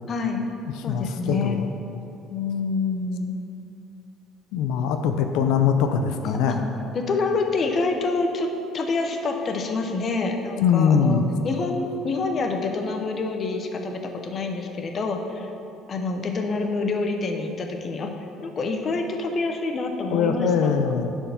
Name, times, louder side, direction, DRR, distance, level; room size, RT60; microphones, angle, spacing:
voice 1, 0.1-0.5 0.8-1.6 2.3-3.4 6.2-6.6 6.9-8.5 8.7-15.5 15.9-18.1 18.4-20.7, left 3 dB, 30° left, 4 dB, 0.7 m, -27 dB
voice 2, 0.7-1.7 4.5-6.6 10.6-11.3 20.1-21.1, left 7 dB, 80° left, 7 dB, 0.5 m, -22 dB
10.0 x 4.5 x 5.8 m, 2.8 s
cardioid pair, 160°, 0 cm